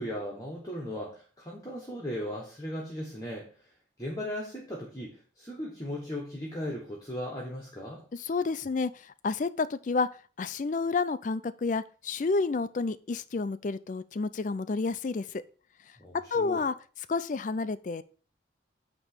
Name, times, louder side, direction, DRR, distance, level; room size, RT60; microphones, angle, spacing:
voice 1, 0.0-3.7 4.0-8.0 16.0-16.6, equal, 20° left, -1 dB, 1.3 m, -37 dB
voice 2, 8.1-10.1 10.4-15.4 16.3-16.7 17.1-18.0, left 4 dB, 45° left, 14 dB, 0.4 m, -30 dB
8.8 x 3.0 x 6.5 m, 0.40 s
head